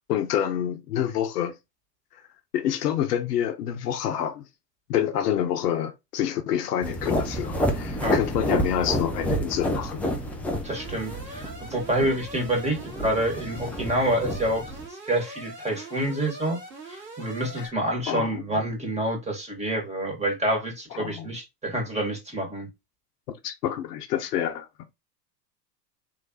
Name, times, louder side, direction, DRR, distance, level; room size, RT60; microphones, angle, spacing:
voice 1, 0.1-1.6 2.1-2.2 2.5-4.4 4.9-10.0 17.6-17.7 18.1-18.6 20.9-21.3 23.4-24.7, left 10 dB, 70° left, 0.9 m, -27 dB
sound 1, 6.8-14.9, equal, 5° left, 0.3 m, -29 dB
voice 2, 10.6-14.6 14.9-16.6 16.9-22.7, right 1 dB, 15° right, 1.9 m, -27 dB
Alarm, 10.7-17.7, right 2 dB, 70° right, 2.3 m, -42 dB
3.9 x 3.2 x 3.0 m
hypercardioid pair, 90°, 50 cm